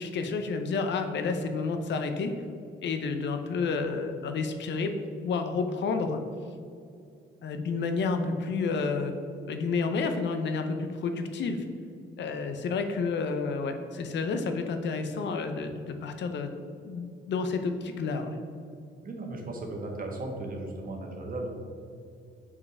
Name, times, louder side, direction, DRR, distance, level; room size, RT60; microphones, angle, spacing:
voice 1, 0.0-2.3 2.8-4.9 5.2-6.2 7.4-9.1 9.5-11.6 12.2-16.5 16.8-18.4, left 4 dB, 65° left, 7 dB, 0.7 m, -30 dB
voice 2, 19.0-21.5, right 2 dB, 45° right, 1 dB, 1.4 m, -36 dB
5.4 x 4.8 x 4.8 m, 2.4 s
cardioid pair, 90°, 20 cm